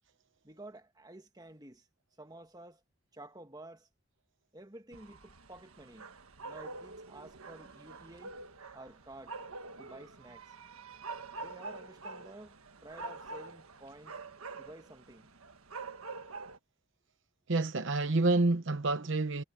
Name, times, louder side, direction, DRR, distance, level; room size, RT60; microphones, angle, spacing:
voice 1, 0.4-1.9 2.2-2.8 3.1-3.9 4.5-6.1 6.4-8.4 8.7-9.4 9.8-10.5 11.4-12.6 12.8-14.2 14.6-15.3, right 1 dB, 15° right, 1.6 m, -51 dB
sound 1, 4.9-16.6, right 3 dB, 75° right, 1.5 m, -46 dB
voice 2, 17.5-19.4, right 2 dB, 55° right, 0.9 m, -28 dB
head